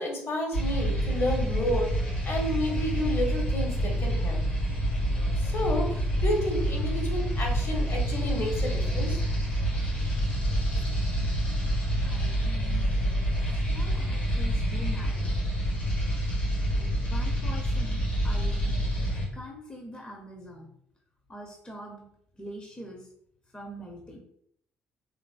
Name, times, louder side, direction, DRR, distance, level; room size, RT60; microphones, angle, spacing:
voice 1, 0.0-1.9 2.2-4.4 5.4-9.2, left 1 dB, 45° left, 1 dB, 0.9 m, -31 dB
sound 1, 0.5-19.3, equal, 80° left, 0.8 m, -27 dB
voice 2, 12.0-12.9 13.5-15.4 16.7-18.8 19.3-20.7 21.3-22.1 22.3-23.1 23.5-24.2, right 1 dB, 15° left, 1 dB, 0.6 m, -43 dB
3.3 x 2.5 x 2.4 m, 0.67 s
figure-of-eight pair, 45°, 6 cm